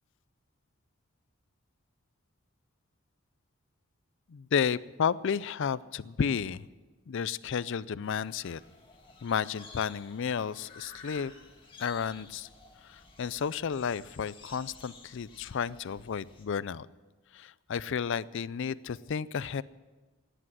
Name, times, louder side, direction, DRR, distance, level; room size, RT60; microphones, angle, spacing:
voice 1, 4.3-6.6 7.1-8.6 9.2-11.3 11.8-12.5 12.8-16.9 17.3-19.6, left 7 dB, 60° left, 19 dB, 0.4 m, -32 dB
sound 1, 8.0-16.5, left 3 dB, 25° left, 1.8 m, -53 dB
17.0 x 10.0 x 7.7 m, 1.3 s
head